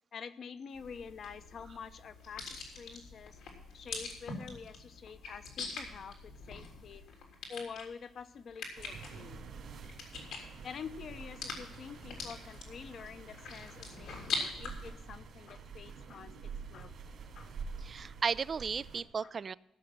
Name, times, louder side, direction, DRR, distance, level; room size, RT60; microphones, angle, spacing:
voice 1, 0.1-3.4 3.7-7.0 7.5-9.4 10.6-16.9 17.3-17.5 18.0-18.1 19.2-19.3, left 6 dB, 55° left, 10 dB, 0.9 m, -47 dB
sound 1, 0.7-14.7, left 4 dB, 85° left, 3.4 m, -44 dB
sound 2, 8.7-19.0, right 5 dB, 70° right, 2.7 m, -48 dB
voice 2, 17.8-19.5, right 6 dB, 45° right, 18 dB, 0.4 m, -34 dB
16.0 x 6.6 x 5.9 m, 0.96 s
cardioid pair, 90°, 0 cm